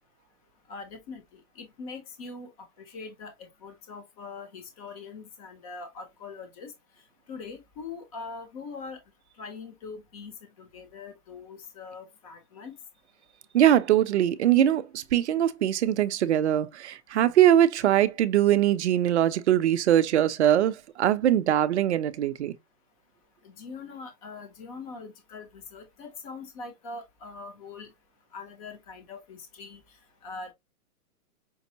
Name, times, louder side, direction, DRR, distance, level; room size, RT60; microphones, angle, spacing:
voice 1, 0.7-2.5 2.8-6.7 7.3-9.0 9.4-10.3 10.6-12.8 23.4-27.9 28.3-29.8 30.2-30.5, left 4 dB, 25° left, 0.6 m, -42 dB
voice 2, 13.5-22.5, right 11 dB, 50° right, 0.5 m, -22 dB
5.3 x 2.0 x 2.6 m
hypercardioid pair, 160°, 45 cm